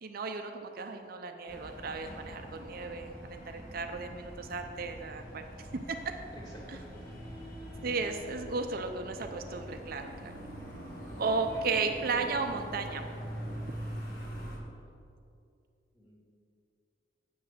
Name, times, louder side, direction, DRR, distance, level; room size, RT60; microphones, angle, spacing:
voice 1, 0.0-5.4 5.9-6.2 6.7-6.8 7.8-10.3 11.2-13.1, right 4 dB, 50° right, 6 dB, 0.5 m, -34 dB
sound 1, 1.5-14.6, equal, 50° left, 2.2 m, -43 dB
voice 2, 6.4-7.1 15.9-16.2, equal, 20° left, -5 dB, 2.5 m, -50 dB
8.6 x 6.4 x 6.6 m, 2.5 s
head